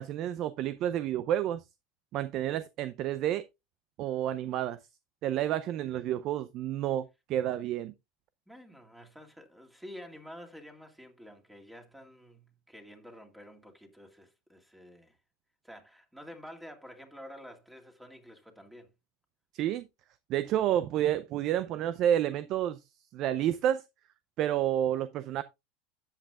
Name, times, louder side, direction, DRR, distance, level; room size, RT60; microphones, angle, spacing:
voice 1, 0.0-1.6 2.1-3.4 4.0-4.8 5.2-7.9 19.5-19.9 20.3-22.8 23.1-23.8 24.4-25.4, right 11 dB, 50° right, 0.5 m, -30 dB
voice 2, 8.5-15.2 15.6-18.9, equal, 5° right, 2.2 m, -49 dB
13.0 x 8.1 x 2.4 m
supercardioid pair, 105°, 0 cm